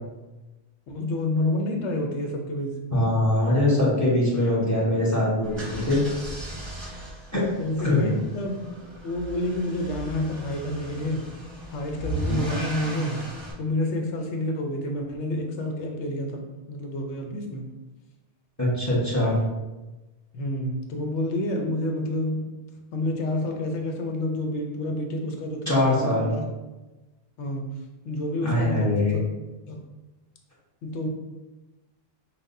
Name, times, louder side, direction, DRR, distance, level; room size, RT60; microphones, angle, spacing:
voice 1, 0.9-2.7 7.6-8.6 9.0-11.2 11.7-13.2 13.6-16.4 16.7-17.7 20.3-22.4 22.9-26.4 27.4-27.7 28.0-29.2 29.7-29.8 30.8-31.1, left 1 dB, 80° left, 2 dB, 1.0 m, -29 dB
voice 2, 2.9-6.0 7.3-7.4 7.8-8.1 18.6-19.4 25.7-26.3 28.4-29.2, left 1 dB, 15° left, -6 dB, 1.1 m, -22 dB
sound 1, 5.4-13.5, right 1 dB, 25° right, 0.8 m, -35 dB
6.0 x 2.3 x 2.6 m, 1.1 s
omnidirectional pair, 1.2 m